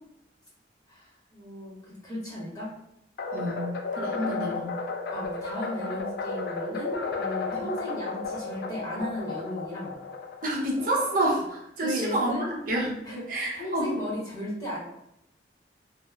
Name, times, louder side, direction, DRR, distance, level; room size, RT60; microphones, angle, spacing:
voice 1, 0.9-1.7 2.0-2.7 5.1-9.9 11.8-12.5 13.0-14.8, equal, 20° left, -7 dB, 0.8 m, -35 dB
sound 1, 3.2-11.5, left 4 dB, 60° left, 0.3 m, -34 dB
voice 2, 3.3-3.6 4.0-4.7 7.5-7.6 10.4-12.3 12.7-12.9 13.3-13.9, right 1 dB, 50° right, -3 dB, 0.6 m, -28 dB
2.0 x 2.0 x 3.4 m, 0.79 s
head